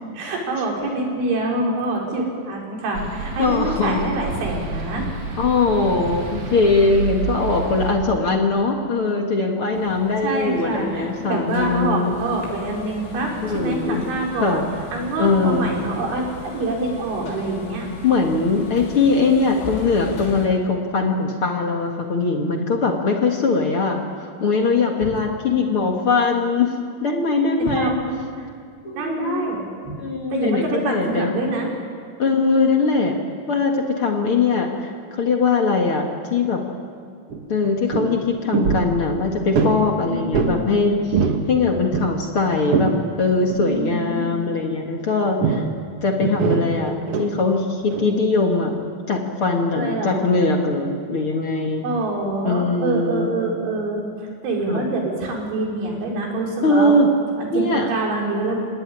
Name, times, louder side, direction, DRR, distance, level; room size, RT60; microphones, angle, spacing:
voice 1, 0.1-5.1 6.1-6.2 10.2-14.6 14.9-17.9 27.6-28.5 28.9-29.9 30.3-31.7 40.0-40.7 43.6-44.3 49.8-50.3 51.8-57.0 57.4-58.6, right 2 dB, 85° right, -1 dB, 6.8 m, -26 dB
sound 1, 2.9-7.9, right 4 dB, 45° right, 3.5 m, -30 dB
voice 2, 3.4-4.1 5.3-12.2 13.4-14.0 14.4-14.6 15.2-15.7 18.0-26.7 27.0-27.9 28.8-29.4 30.0-31.3 32.2-33.2 33.5-36.6 37.5-41.0 41.5-42.9 43.2-45.6 46.0-48.7 49.1-51.8 52.4-53.3 54.7-54.8 56.6-57.1 57.5-57.9, left 3 dB, 55° left, 2 dB, 1.5 m, -21 dB
sound 2, 9.7-20.5, left 3 dB, 85° left, 5.5 m, -38 dB
sound 3, 37.3-37.4 37.6-38.1 38.5-38.9 39.5-39.8 40.3-40.6 40.9-41.4 41.7-43.0 43.5-43.7 45.4-45.7 46.2-47.3 47.9-48.1, right 5 dB, 65° right, 1.5 m, -22 dB
27.0 x 18.5 x 9.9 m, 2.1 s
omnidirectional pair, 5.3 m